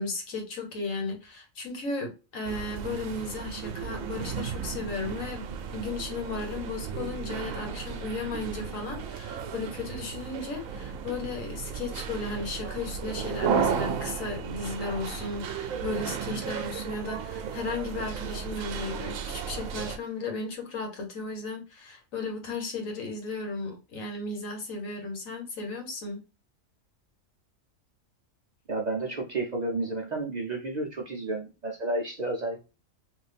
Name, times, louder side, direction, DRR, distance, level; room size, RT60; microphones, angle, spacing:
voice 1, 0.0-26.2, left 3 dB, 75° left, 1.5 m, -35 dB
sound 1, 2.5-20.0, right 7 dB, 85° right, 1.0 m, -34 dB
voice 2, 28.7-32.6, right 2 dB, 45° right, 0.6 m, -31 dB
3.3 x 2.6 x 3.3 m
omnidirectional pair, 1.4 m